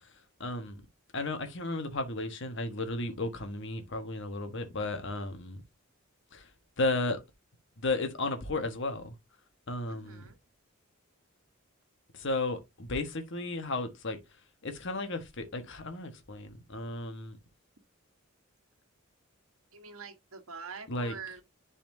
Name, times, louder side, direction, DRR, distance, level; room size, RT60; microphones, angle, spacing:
voice 1, 0.4-0.8 1.1-5.6 6.3-6.4 6.8-7.2 7.8-9.1 9.7-10.2 12.1-14.2 14.6-17.4 20.9-21.1, left 2 dB, 60° left, 1.3 m, -34 dB
voice 2, 9.9-10.4 19.7-21.4, right 5 dB, 80° right, 1.3 m, -45 dB
10.5 x 4.2 x 2.7 m
head